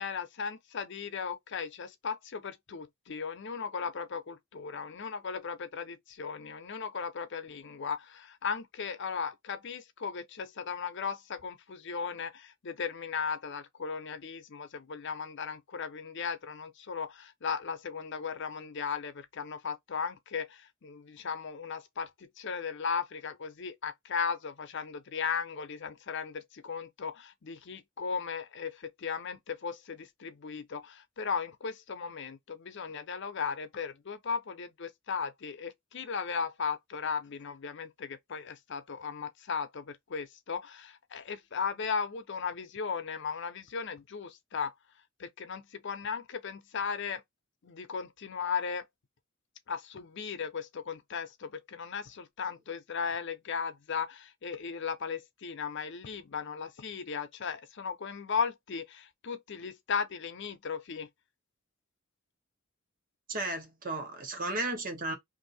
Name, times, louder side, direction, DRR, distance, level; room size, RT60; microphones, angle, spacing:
voice 1, 0.0-44.7 45.2-47.2 47.6-48.8 49.7-61.1, left 6 dB, 60° left, 0.6 m, -36 dB
voice 2, 63.3-65.1, right 2 dB, 40° right, 1.1 m, -34 dB
2.7 x 2.5 x 4.0 m
head